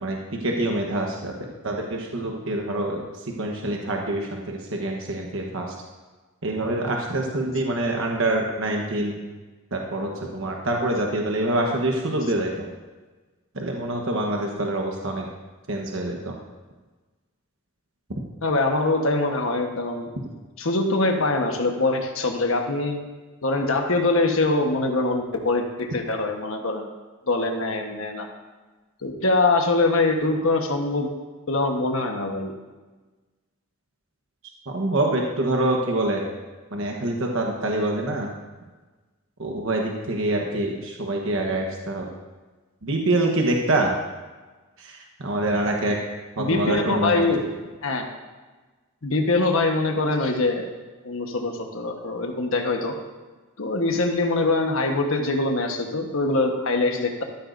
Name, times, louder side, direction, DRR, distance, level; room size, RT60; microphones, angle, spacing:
voice 1, 0.0-1.3 1.6-3.0 3.4-5.7 6.4-9.2 9.7-12.7 13.5-15.3 15.7-16.3 34.7-36.3 36.7-38.3 39.4-42.1 42.8-43.9 44.8-46.0 46.4-47.2, right 1 dB, 65° right, 1 dB, 1.2 m, -25 dB
voice 2, 18.4-20.1 20.6-23.0 23.4-26.9 27.3-28.3 29.0-31.1 31.5-32.5 46.4-47.4 47.8-48.1 49.0-50.7 51.0-52.9 53.6-57.2, left 2 dB, 70° left, 3 dB, 1.3 m, -23 dB
13.5 x 13.0 x 2.7 m, 1.3 s
head